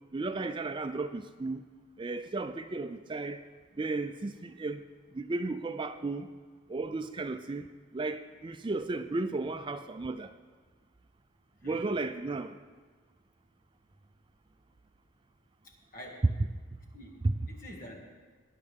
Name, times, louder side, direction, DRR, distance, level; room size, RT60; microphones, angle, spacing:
voice 1, 0.1-1.6 2.0-3.4 3.8-4.8 5.1-6.3 6.7-10.3 11.6-12.6 17.2-17.3, right 3 dB, 25° right, 0.4 m, -34 dB
voice 2, 11.6-11.9 15.9-16.3 16.9-18.0, equal, 45° left, 2.1 m, -47 dB
20.0 x 9.6 x 3.5 m
head